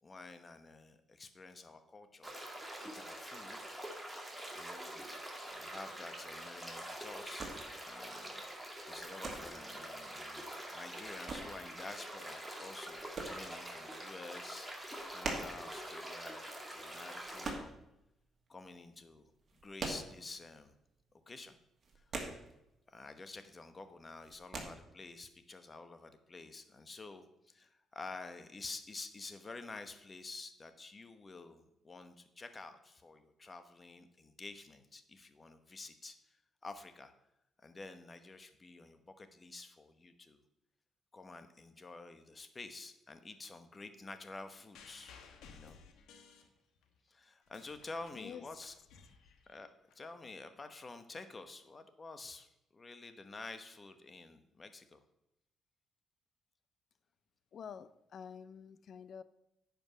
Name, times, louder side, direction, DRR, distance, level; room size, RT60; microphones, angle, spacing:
voice 1, 0.0-2.3 2.9-4.1 4.5-5.1 5.5-7.5 7.8-14.7 15.1-17.8 18.5-20.8 21.3-21.6 21.9-22.1 22.9-36.4 36.6-37.1 37.6-40.4 41.1-45.1 45.5-45.8 47.1-48.7 49.5-55.0, left 3 dB, 30° left, 1.1 m, -50 dB
sound 1, 2.2-17.5, right 1 dB, 5° right, 2.2 m, -46 dB
sound 2, 5.5-18.5 18.7-20.7 20.9-21.1 21.4-23.0 23.2-23.7 24.0-24.6, right 3 dB, 45° right, 2.1 m, -44 dB
sound 3, 44.7-47.0 47.3-49.9 50.8-50.9, left 6 dB, 85° left, 1.2 m, -58 dB
voice 2, 57.5-59.2, left 7 dB, 60° left, 0.5 m, -48 dB
9.7 x 5.2 x 6.3 m
cardioid pair, 90°, 0 cm